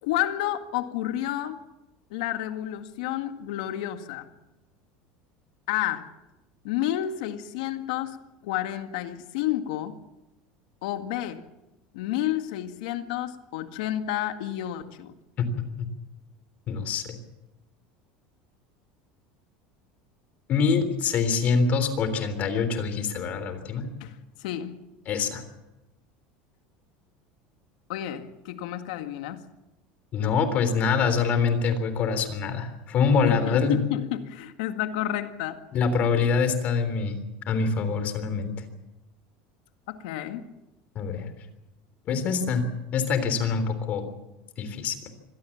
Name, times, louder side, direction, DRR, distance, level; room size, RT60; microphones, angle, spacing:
voice 1, 0.0-1.6 2.1-4.3 5.7-6.1 6.6-10.0 10.8-11.4 11.9-15.1 24.0-24.8 27.9-29.5 33.2-35.6 39.9-40.5, left 12 dB, 80° left, 8 dB, 1.9 m, -30 dB
voice 2, 16.7-17.2 20.5-23.9 25.1-25.4 30.1-33.8 35.7-37.2 37.5-38.7 41.0-41.3 42.1-42.6 42.9-44.1 44.6-45.0, left 5 dB, 40° left, 10 dB, 3.6 m, -25 dB
25.0 x 17.5 x 7.3 m, 0.97 s
supercardioid pair, 135°, 4 cm